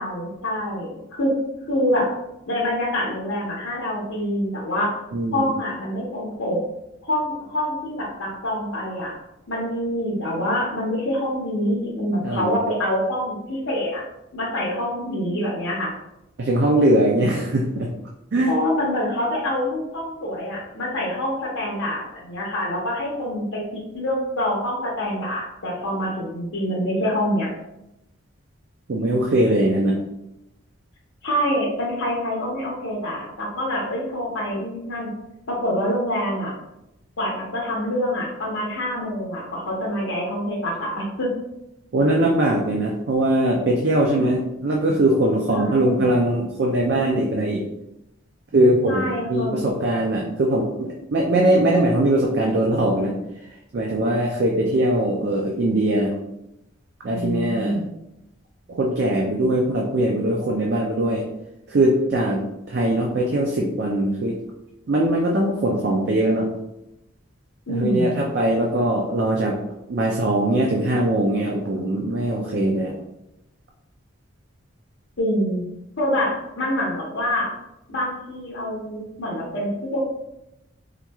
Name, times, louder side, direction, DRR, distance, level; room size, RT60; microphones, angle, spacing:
voice 1, 0.0-1.3 1.7-2.1 2.5-4.9 5.3-6.6 7.0-9.1 9.5-14.0 14.3-15.9 18.4-23.6 23.9-27.5 31.2-35.1 35.5-36.5 37.2-41.3 45.5-46.2 48.9-49.7 57.1-57.8 67.7-68.2 75.2-75.7 76.0-77.5 77.9-80.0, equal, 85° left, -5 dB, 0.8 m, -26 dB
voice 2, 5.1-5.5 12.2-12.6 16.4-17.9 18.3-18.5 28.9-30.0 41.9-47.7 48.5-53.1 53.7-56.1 57.0-57.8 58.7-61.2 61.7-64.4 64.9-66.5 67.7-69.6 69.9-73.0, right 1 dB, 55° right, -1 dB, 0.4 m, -21 dB
3.5 x 3.0 x 2.2 m, 0.88 s
head